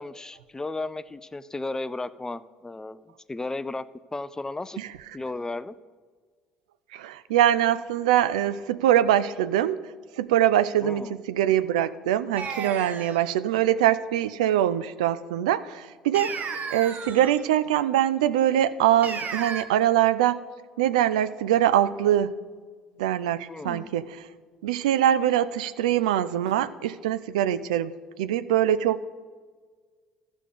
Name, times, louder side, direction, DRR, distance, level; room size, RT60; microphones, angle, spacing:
voice 1, 0.0-3.0 3.3-3.9 4.1-4.8 5.1-5.7 10.8-11.2 23.5-23.9, left 2 dB, 15° left, 15 dB, 0.4 m, -34 dB
voice 2, 6.9-9.8 10.2-16.3 16.7-20.4 20.8-22.4 23.0-24.1 24.6-27.9 28.2-29.1, right 11 dB, 85° right, 15 dB, 0.4 m, -23 dB
sound 1, 12.4-13.3 16.1-17.4 19.0-19.6, right 5 dB, 45° right, 1.0 m, -34 dB
13.5 x 5.0 x 5.1 m, 1.5 s
hypercardioid pair, 60°, 4 cm